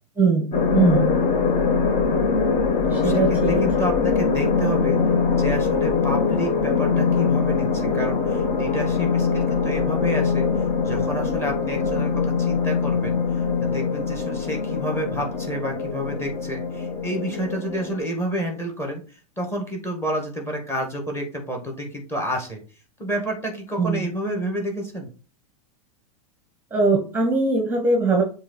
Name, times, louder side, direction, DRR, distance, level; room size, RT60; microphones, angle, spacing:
voice 1, 0.2-1.1 2.9-3.6 23.8-24.0 26.7-28.2, right 4 dB, 10° right, 2 dB, 1.2 m, -21 dB
sound 1, 0.5-18.0, left 5 dB, 35° left, 1.4 m, -22 dB
voice 2, 2.9-5.0 5.3-10.5 10.8-22.6 23.0-25.1, equal, 10° left, 1 dB, 2.1 m, -30 dB
7.3 x 3.0 x 4.3 m, 0.37 s
hypercardioid pair, 100°, 20 cm